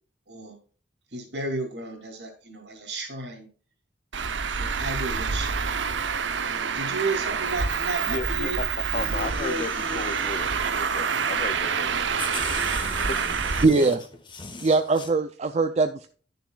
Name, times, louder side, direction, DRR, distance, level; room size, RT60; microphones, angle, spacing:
voice 1, 1.1-3.5 4.2-5.7 6.4-8.6 8.9-10.2, right 2 dB, 70° right, 3.1 m, -34 dB
Traffic noise roadway noise, 4.1-13.6, right 6 dB, 85° right, 0.8 m, -27 dB
voice 2, 8.1-8.7 8.9-12.6 13.1-13.3, left 4 dB, 40° left, 0.5 m, -35 dB
sound 1, 8.7-11.1 11.8-11.9 12.2-15.1, left 4 dB, 25° left, 1.2 m, -40 dB
voice 3, 13.6-14.0 14.6-16.1, right 3 dB, 35° right, 0.4 m, -21 dB
11.5 x 6.9 x 2.4 m
head